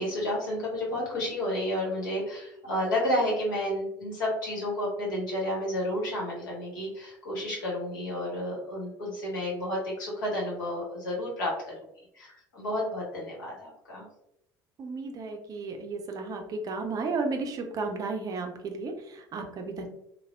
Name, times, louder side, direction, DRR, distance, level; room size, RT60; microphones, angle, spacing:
voice 1, 0.0-11.7 12.1-14.0, left 1 dB, 70° left, -3 dB, 1.0 m, -31 dB
voice 2, 14.8-19.9, right 3 dB, 35° right, 4 dB, 0.5 m, -33 dB
3.3 x 2.0 x 2.2 m, 0.78 s
figure-of-eight pair, 60°, 11 cm